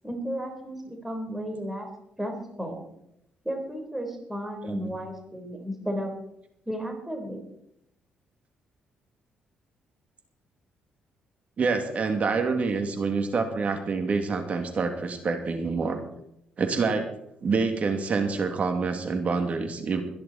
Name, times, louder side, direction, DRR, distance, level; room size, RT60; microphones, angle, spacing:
voice 1, 0.0-1.9 2.2-2.8 3.4-6.1 6.7-7.4, equal, 5° right, 2 dB, 4.1 m, -33 dB
voice 2, 11.6-16.0 16.6-17.1 17.4-20.0, right 4 dB, 45° right, 5 dB, 2.5 m, -27 dB
22.5 x 10.5 x 4.2 m, 0.79 s
cardioid pair, 85°, 3 cm